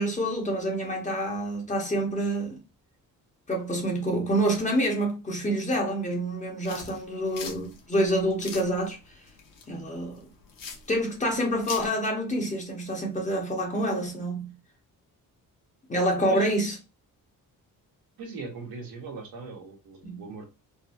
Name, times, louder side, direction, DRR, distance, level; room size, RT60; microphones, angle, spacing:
voice 1, 0.0-2.6 3.5-9.0 9.7-10.2 10.9-14.5 15.9-16.7 20.0-20.2, right 1 dB, 20° left, 1.0 m, -27 dB
sound 1, 6.6-11.9, left 5 dB, 65° left, 1.0 m, -42 dB
voice 2, 18.2-20.5, right 4 dB, 85° right, 1.4 m, -39 dB
3.9 x 2.2 x 2.6 m
wide cardioid pair, 175°, 35 cm